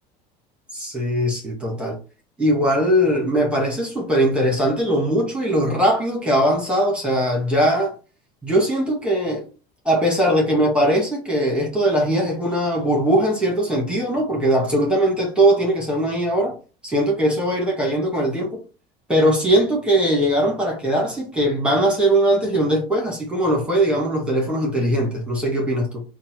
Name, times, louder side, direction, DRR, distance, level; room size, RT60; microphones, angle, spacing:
voice 1, 0.7-2.0 2.4-7.9 8.4-9.5 9.9-16.6 16.8-18.6 19.1-26.0, right 1 dB, 5° right, 1.8 m, -20 dB
4.1 x 2.5 x 4.3 m
supercardioid pair, 120°, 20 cm